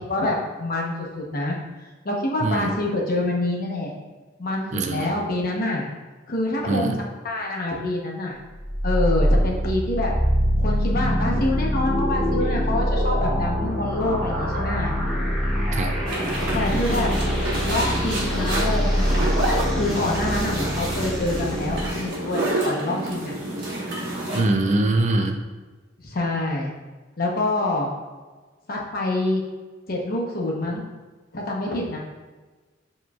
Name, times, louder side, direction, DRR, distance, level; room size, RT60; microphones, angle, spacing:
voice 1, 0.0-1.6 2.0-3.9 4.4-5.8 6.3-6.9 7.2-8.4 8.8-10.1 10.6-14.9 16.5-17.1 17.6-19.3 19.7-23.3 26.0-26.7 27.2-27.9 28.7-29.4 29.9-30.8 31.3-32.0, left 1 dB, 50° left, -2 dB, 0.9 m, -26 dB
voice 2, 4.7-5.1 6.7-7.0 15.7-16.0 24.3-25.4, right 2 dB, 40° right, 4 dB, 0.4 m, -23 dB
sound 1, 8.6-21.9, equal, ahead, 0.9 m, -24 dB
sound 2, 16.1-24.4, right 1 dB, 60° right, 1.3 m, -28 dB
7.1 x 3.1 x 2.4 m, 1.3 s
head